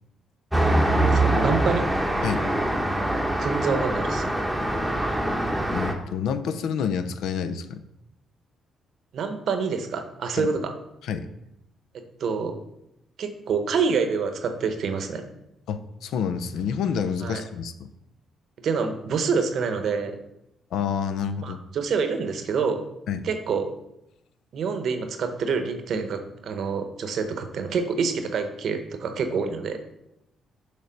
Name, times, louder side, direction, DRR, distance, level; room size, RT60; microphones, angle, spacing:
Traffic noise roadway noise, 0.5-5.9, right 1 dB, 5° right, 0.9 m, -23 dB
voice 1, 0.9-1.9 3.4-4.2 9.1-10.7 11.9-12.6 13.2-15.3 17.2-17.4 18.6-20.2 21.4-22.8 23.2-23.7 24.5-29.8, right 5 dB, 65° right, 7 dB, 0.8 m, -27 dB
voice 2, 5.7-7.8 10.3-10.5 11.0-11.3 15.7-17.9 20.7-21.6 23.1-23.3, left 7 dB, 80° left, 11 dB, 0.4 m, -28 dB
6.7 x 3.4 x 5.1 m, 0.85 s
cardioid pair, 90°, 0 cm